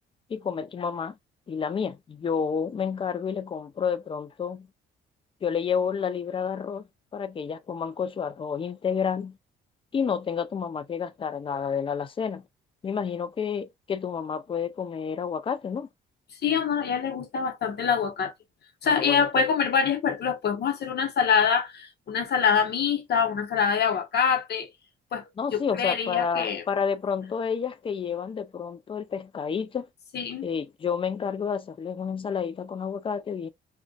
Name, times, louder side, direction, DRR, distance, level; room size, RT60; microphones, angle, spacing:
voice 1, 0.3-1.2 1.5-4.7 5.4-6.9 7.1-9.4 9.9-12.4 12.8-15.9 18.8-19.5 25.4-29.9 30.4-33.5, left 6 dB, 25° left, 0.4 m, -30 dB
voice 2, 16.4-18.3 18.8-24.7 25.1-25.2 25.5-26.6 30.1-30.4, left 6 dB, 55° left, 0.8 m, -25 dB
2.5 x 2.2 x 2.2 m
supercardioid pair, 75°, 21 cm